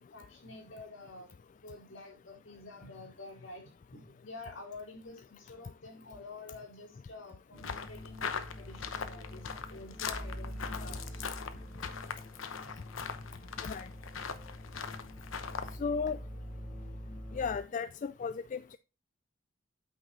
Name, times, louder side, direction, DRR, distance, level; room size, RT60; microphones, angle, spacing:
voice 1, 0.1-1.3 1.6-11.2 12.6-12.8, left 2 dB, 70° left, 3.8 m, -49 dB
sound 1, 7.6-15.8, left 6 dB, 85° left, 0.9 m, -41 dB
sound 2, 7.6-17.6, equal, 10° left, 3.1 m, -45 dB
voice 2, 15.8-16.2 17.3-18.8, left 5 dB, 40° left, 0.3 m, -35 dB
8.8 x 5.8 x 4.1 m
head